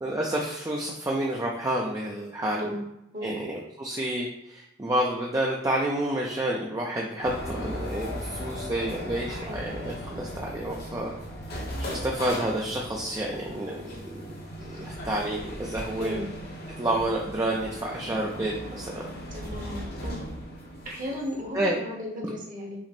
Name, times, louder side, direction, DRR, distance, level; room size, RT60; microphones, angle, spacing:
voice 1, 0.0-2.7 3.2-11.1 11.5-16.2 16.8-19.1 21.5-21.7, right 1 dB, 15° right, -2 dB, 0.4 m, -29 dB
sound 1, 7.2-21.8, equal, 50° left, 1.1 m, -38 dB
voice 2, 9.3-9.7 16.0-16.2 19.3-20.2 20.8-22.9, left 1 dB, 40° right, -1 dB, 0.9 m, -35 dB
5.8 x 2.1 x 4.2 m, 0.86 s
head